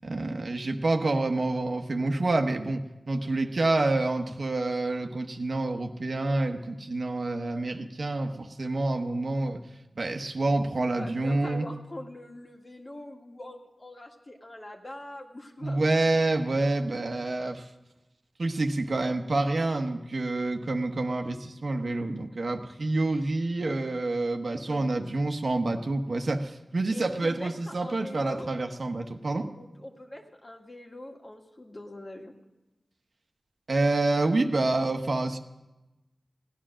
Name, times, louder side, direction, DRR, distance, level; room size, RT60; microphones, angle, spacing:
voice 1, 0.0-9.6 10.0-11.6 15.6-17.7 18.4-29.5 33.7-35.4, right 2 dB, 70° right, 5 dB, 1.0 m, -28 dB
voice 2, 10.9-15.8 24.5-24.9 26.9-28.5 29.6-32.3, left 1 dB, 45° left, 1 dB, 2.0 m, -43 dB
16.5 x 10.0 x 6.3 m, 1.0 s
cardioid pair, 45°, 0 cm